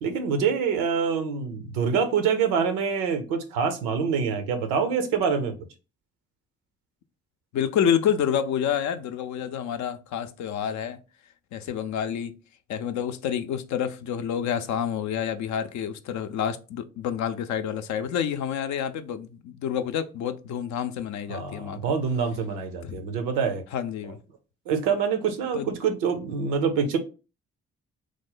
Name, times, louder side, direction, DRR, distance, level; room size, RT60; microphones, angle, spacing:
voice 1, 0.0-5.5 21.3-23.6 24.7-27.0, right 6 dB, 80° right, 0.6 m, -25 dB
voice 2, 7.5-11.0 11.5-12.4 12.7-21.8 22.8-23.0 23.7-24.2 25.5-25.7, left 8 dB, 60° left, 0.5 m, -28 dB
3.1 x 2.1 x 3.7 m
hypercardioid pair, 40°, 32 cm